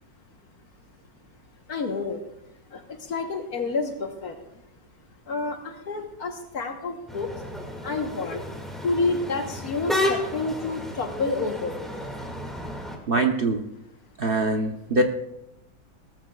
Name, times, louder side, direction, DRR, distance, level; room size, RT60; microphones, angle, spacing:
voice 1, 1.7-2.2 2.7-2.8 3.1-4.4 5.3-7.3 7.8-8.5 8.8-11.8, left 3 dB, 60° left, 4 dB, 1.6 m, -29 dB
sound 1, 7.1-13.0, left 1 dB, ahead, 1.9 m, -32 dB
voice 2, 13.1-13.6 14.2-15.0, right 2 dB, 45° right, 3 dB, 0.8 m, -23 dB
18.0 x 14.0 x 2.4 m, 0.84 s
omnidirectional pair, 2.0 m